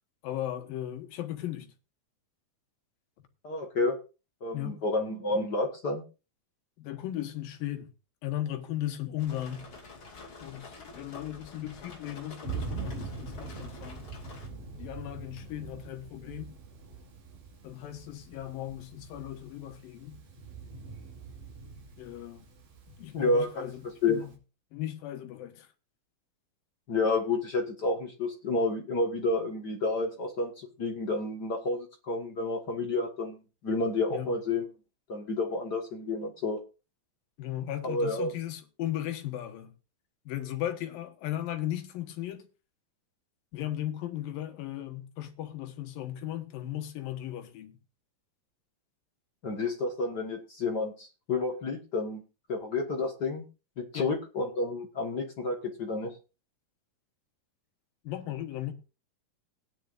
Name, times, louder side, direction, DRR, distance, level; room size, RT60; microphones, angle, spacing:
voice 1, 0.2-1.7 4.5-4.8 6.8-7.9 8.2-9.7 10.4-14.1 14.8-16.5 17.6-20.2 22.0-22.5 23.0-23.8 24.1-24.3 24.7-25.7 34.1-34.4 37.4-39.7 40.3-42.5 43.5-47.8 53.9-54.1 58.0-58.7, left 12 dB, 75° left, 2.9 m, -36 dB
voice 2, 3.4-4.0 4.4-6.0 23.1-23.7 24.0-24.2 26.9-33.4 33.6-34.7 35.1-36.6 37.8-38.3 49.4-52.2 52.5-53.4 53.8-56.1, left 3 dB, 55° left, 1.1 m, -30 dB
sound 1, 9.2-14.5, left 3 dB, 40° left, 3.0 m, -48 dB
Thunder, 12.4-24.4, right 5 dB, 70° right, 4.4 m, -43 dB
19.0 x 10.0 x 2.5 m
omnidirectional pair, 4.1 m